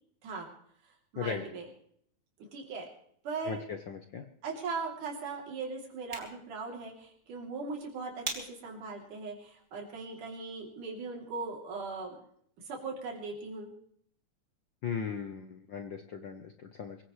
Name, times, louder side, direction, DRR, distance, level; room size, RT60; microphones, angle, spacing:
voice 1, 1.1-1.7 2.4-2.9 3.2-3.6 4.4-12.2 12.7-13.7, right 4 dB, 85° right, 0 dB, 4.7 m, -39 dB
voice 2, 3.4-4.2 14.8-17.0, left 6 dB, 80° left, 6 dB, 1.0 m, -37 dB
sound 1, 5.9-10.9, right 2 dB, 20° right, 3.0 m, -46 dB
23.5 x 16.0 x 3.2 m, 0.65 s
omnidirectional pair, 3.5 m